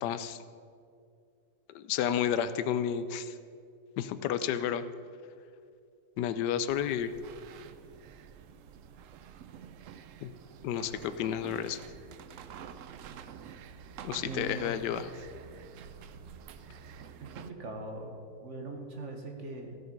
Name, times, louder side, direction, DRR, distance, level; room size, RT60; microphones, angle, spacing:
voice 1, 0.0-0.4 1.7-3.3 4.0-4.8 6.2-7.1 10.2-10.3 10.6-11.8 14.0-15.1, left 9 dB, 75° left, 12 dB, 1.1 m, -31 dB
sound 1, 6.7-17.5, right 7 dB, 80° right, 0.7 m, -48 dB
voice 2, 14.2-14.7 17.2-19.8, right 2 dB, 45° right, 3 dB, 1.4 m, -41 dB
15.5 x 6.7 x 5.2 m, 2.3 s
omnidirectional pair, 1.9 m